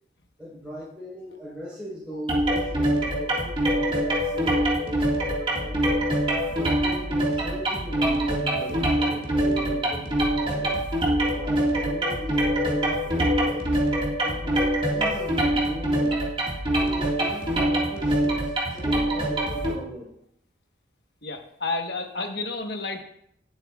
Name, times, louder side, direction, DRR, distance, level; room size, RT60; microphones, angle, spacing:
voice 1, 0.4-6.2 6.5-10.8 11.3-13.7 14.2-16.2 16.7-20.1, equal, 5° right, -10 dB, 4.1 m, -39 dB
sound 1, 2.3-19.7, right 1 dB, 25° right, 1.8 m, -24 dB
voice 2, 21.2-23.0, left 3 dB, 60° left, 4 dB, 1.2 m, -31 dB
19.0 x 7.9 x 2.4 m, 0.71 s
head